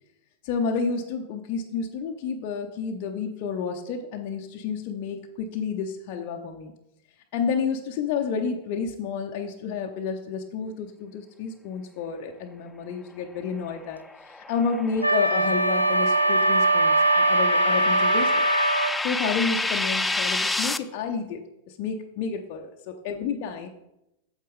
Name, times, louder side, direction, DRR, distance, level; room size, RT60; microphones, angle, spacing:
voice 1, 0.4-6.7 7.3-18.4 19.0-22.7 23.0-23.7, left 5 dB, 45° left, 2 dB, 0.7 m, -30 dB
sound 1, 14.0-20.8, left 2 dB, 5° left, 0.4 m, -30 dB
Wind instrument woodwind instrument, 15.0-19.0, right 2 dB, 90° right, 0.5 m, -21 dB
8.3 x 7.2 x 3.6 m, 0.87 s
figure-of-eight pair, 90°, 0 cm